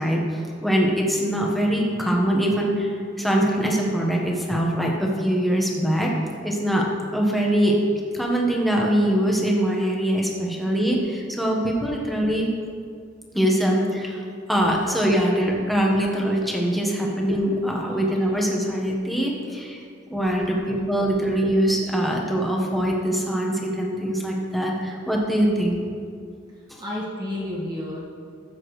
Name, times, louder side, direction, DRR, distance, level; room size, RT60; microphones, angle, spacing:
voice 1, 0.0-6.1 6.4-6.8 7.1-7.8 8.1-12.5 13.3-25.8 26.7-26.8, equal, ahead, -2 dB, 1.3 m, -23 dB
voice 2, 26.8-28.0, left 1 dB, 20° right, -6 dB, 1.8 m, -32 dB
13.0 x 8.5 x 3.3 m, 2.2 s
head